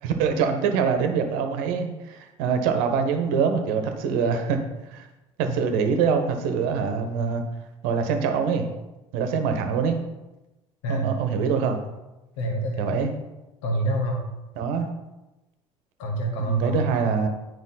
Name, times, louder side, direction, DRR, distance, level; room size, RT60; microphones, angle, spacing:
voice 1, 0.0-4.6 4.9-5.1 5.4-7.4 7.8-8.7 9.1-10.0 10.9-11.8 12.8-13.1 14.5-14.9 16.4-17.3, right 6 dB, 60° right, 6 dB, 1.2 m, -24 dB
voice 2, 12.4-13.0 13.6-14.2 16.0-16.9, right 1 dB, 70° left, 0 dB, 1.6 m, -26 dB
9.6 x 5.0 x 4.0 m, 1.0 s
figure-of-eight pair, 60°, 17 cm